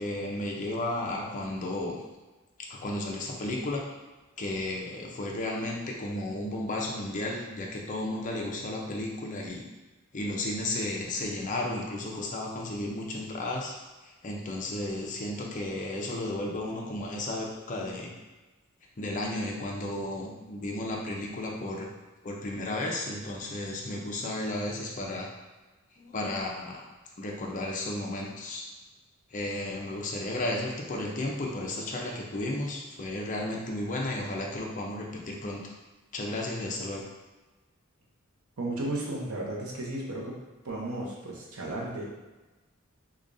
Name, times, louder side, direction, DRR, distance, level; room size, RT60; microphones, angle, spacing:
voice 1, 0.0-2.0 2.7-3.8 4.4-9.6 10.1-13.7 14.0-18.1 19.0-21.9 22.2-25.3 26.0-26.8 27.2-28.7 29.3-35.6 36.1-37.0, left 1 dB, 40° left, -1 dB, 0.6 m, -33 dB
voice 2, 38.6-40.3 40.6-42.1, right 1 dB, 90° right, -3 dB, 0.8 m, -34 dB
4.9 x 2.3 x 2.6 m, 1.2 s
head